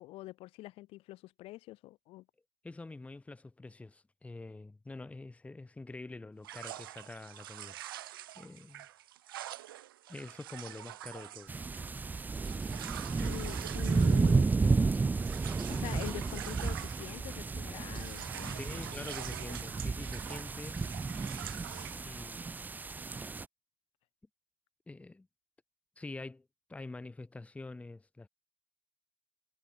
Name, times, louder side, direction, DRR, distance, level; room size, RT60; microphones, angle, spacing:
voice 1, 0.0-2.3 13.2-14.5 15.7-19.1, left 18 dB, 50° left, 1.0 m, -45 dB
voice 2, 2.6-7.8 8.0-8.9 10.1-11.5 18.5-20.8 22.0-22.5 24.9-25.3 26.0-28.3, left 2 dB, 10° left, 0.9 m, -46 dB
sound 1, 6.4-17.5 17.8-22.1, right 13 dB, 70° right, 1.2 m, -46 dB
sound 2, 11.5-23.5, right 4 dB, 15° right, 0.5 m, -32 dB
figure-of-eight pair, 60°, 12 cm